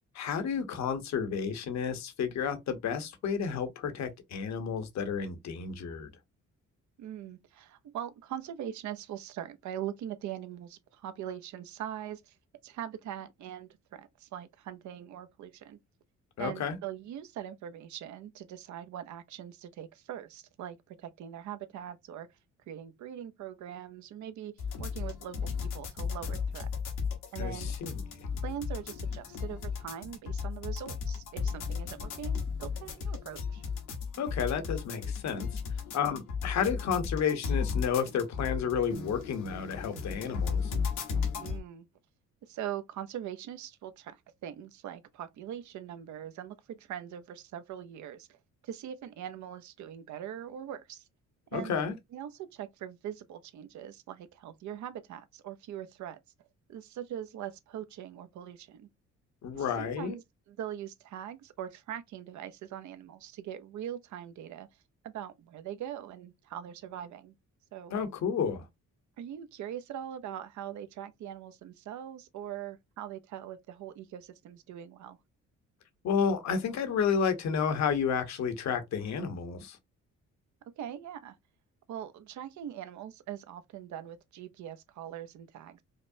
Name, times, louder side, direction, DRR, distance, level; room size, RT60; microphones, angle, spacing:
voice 1, 0.1-6.1 16.4-16.8 27.4-28.0 34.2-35.5 35.9-40.7 51.5-52.0 59.4-60.1 67.9-68.6 76.0-79.8, left 6 dB, 65° left, 0.9 m, -31 dB
voice 2, 7.0-12.4 12.6-15.8 16.4-22.3 22.7-24.5 24.8-26.7 27.3-27.7 28.4-33.6 41.4-41.9 42.5-48.4 48.6-51.1 51.5-51.8 52.1-56.2 56.7-58.9 59.5-64.7 65.0-67.3 67.7-67.9 69.2-75.2 80.8-81.4 81.9-85.8, right 10 dB, 70° right, 0.6 m, -42 dB
sound 1, 24.6-41.6, left 6 dB, 85° left, 1.3 m, -35 dB
5.0 x 2.0 x 2.7 m
cardioid pair, 90°, 30 cm